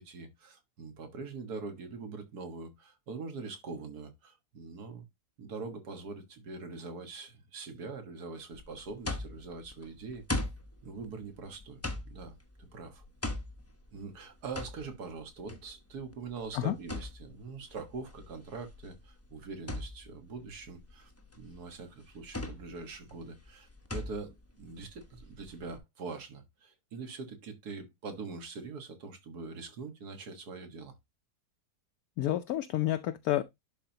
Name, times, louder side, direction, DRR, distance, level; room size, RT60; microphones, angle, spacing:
voice 1, 0.0-5.0 5.4-10.2 10.8-13.0 13.9-21.1 21.4-31.0, right 4 dB, 70° right, 1.9 m, -43 dB
sound 1, 8.5-25.8, left 2 dB, 15° left, 0.6 m, -41 dB
voice 2, 32.2-33.4, left 13 dB, 70° left, 1.0 m, -29 dB
11.0 x 4.5 x 2.8 m
omnidirectional pair, 1.7 m